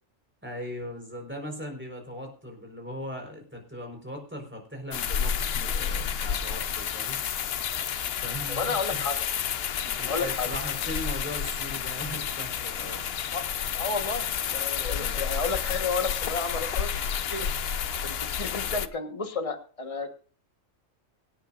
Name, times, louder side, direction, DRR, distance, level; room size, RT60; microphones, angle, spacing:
voice 1, 0.4-7.2 8.2-9.0 9.8-13.1 14.9-15.2, equal, 10° right, 2 dB, 4.4 m, -39 dB
sound 1, 4.9-18.9, left 8 dB, 60° left, 0.8 m, -30 dB
voice 2, 8.5-9.2 10.1-10.6 13.3-13.4 13.7-16.9 17.3-17.5 18.0-20.1, left 4 dB, 25° left, 6 dB, 1.4 m, -32 dB
24.5 x 9.2 x 2.5 m, 0.41 s
omnidirectional pair, 1.3 m